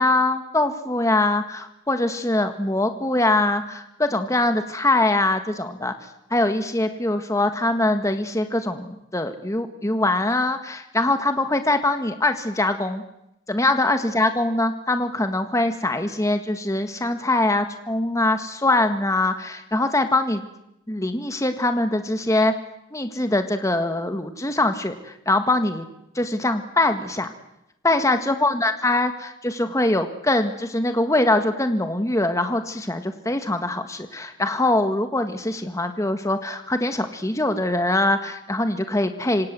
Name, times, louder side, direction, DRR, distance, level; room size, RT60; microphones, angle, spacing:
voice 1, 0.0-5.9 6.3-13.0 13.5-20.4 20.9-22.6 22.9-25.9 26.2-27.3 27.8-39.5, left 2 dB, 15° left, 7 dB, 1.7 m, -23 dB
26.5 x 26.0 x 7.7 m, 0.84 s
head